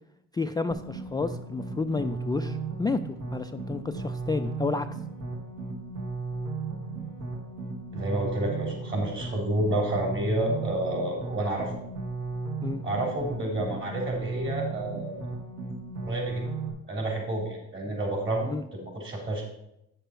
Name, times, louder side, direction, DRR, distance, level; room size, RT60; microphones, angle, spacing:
voice 1, 0.3-4.9 12.6-12.8 18.5-18.6, left 3 dB, 15° left, 7 dB, 0.3 m, -30 dB
sound 1, 0.7-16.7, right 3 dB, 75° right, 2.3 m, -35 dB
voice 2, 7.9-11.7 12.8-15.2 16.0-16.4 16.9-19.4, right 1 dB, 40° right, -1 dB, 3.9 m, -30 dB
9.2 x 6.8 x 4.5 m, 0.82 s
cardioid pair, 90°, 30 cm